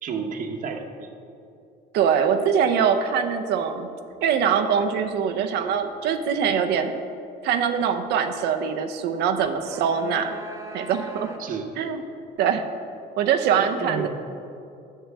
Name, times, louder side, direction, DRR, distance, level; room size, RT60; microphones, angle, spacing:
voice 1, 0.0-1.1 11.4-11.8 13.6-14.1, right 5 dB, 50° right, 5 dB, 1.0 m, -31 dB
voice 2, 1.9-3.9 4.2-7.0 7.4-10.4 10.7-11.3 11.8-12.0 12.4-12.7 13.2-14.1, right 7 dB, 80° right, 7 dB, 0.7 m, -23 dB
sound 1, 9.4-11.7, right 1 dB, 20° right, 1.1 m, -40 dB
6.8 x 6.5 x 7.2 m, 2.6 s
cardioid pair, 110°, 17 cm